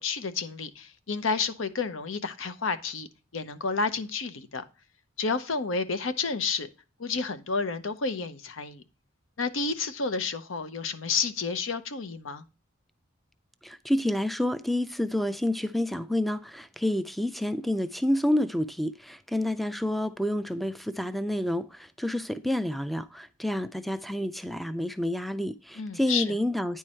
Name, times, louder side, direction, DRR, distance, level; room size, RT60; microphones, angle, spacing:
voice 1, 0.0-3.1 3.3-4.6 5.2-6.7 7.0-8.8 9.4-12.4 25.8-26.4, left 4 dB, 85° left, 0.8 m, -30 dB
voice 2, 13.6-26.8, left 1 dB, ahead, 0.3 m, -29 dB
9.6 x 4.6 x 4.3 m
head